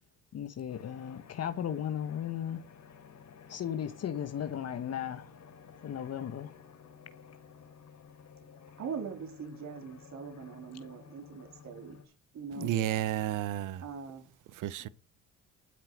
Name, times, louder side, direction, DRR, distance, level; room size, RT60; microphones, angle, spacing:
voice 1, 0.3-2.6 3.5-5.3 5.8-6.5 12.6-12.9, left 9 dB, 55° left, 1.1 m, -36 dB
sound 1, 0.7-12.1, left 6 dB, 75° left, 4.4 m, -54 dB
voice 2, 8.8-12.0 12.3-12.7 13.8-14.3, right 6 dB, 65° right, 3.6 m, -42 dB
voice 3, 12.6-13.8 14.6-14.9, right 12 dB, 85° right, 0.8 m, -31 dB
12.0 x 6.6 x 7.5 m
cardioid pair, 90°, 30 cm